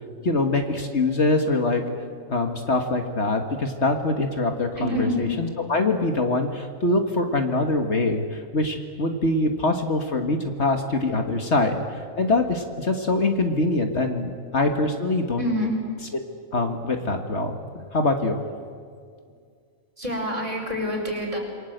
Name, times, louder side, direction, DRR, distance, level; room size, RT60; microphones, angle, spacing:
voice 1, 0.2-1.8 2.3-15.4 16.5-17.6 17.9-18.4, left 2 dB, 55° left, 5 dB, 1.9 m, -24 dB
voice 2, 4.8-5.3 14.2-14.4 15.3-15.8 20.0-21.4, equal, 25° right, 0 dB, 5.4 m, -28 dB
28.0 x 22.5 x 8.0 m, 2.2 s
omnidirectional pair, 1.4 m